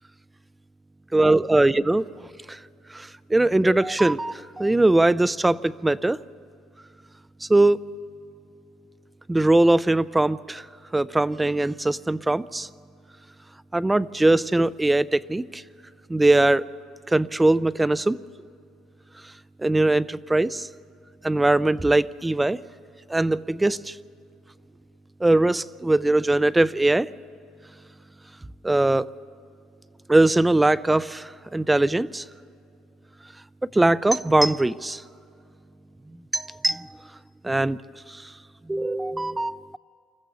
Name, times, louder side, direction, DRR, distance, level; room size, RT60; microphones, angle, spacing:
voice 1, 1.1-2.0 2.5-2.6 2.9-6.2 7.4-7.8 9.3-10.6 10.9-12.7 13.7-15.6 16.1-16.6 17.1-18.2 19.6-20.7 21.2-22.6 23.1-23.9 25.2-27.1 28.6-29.1 30.1-32.2 33.7-35.0 36.3-36.9 37.4-37.8 38.7-39.8, right 2 dB, 10° right, 17 dB, 0.4 m, -21 dB
26.0 x 14.0 x 7.0 m, 2.4 s
supercardioid pair, 95°, 0 cm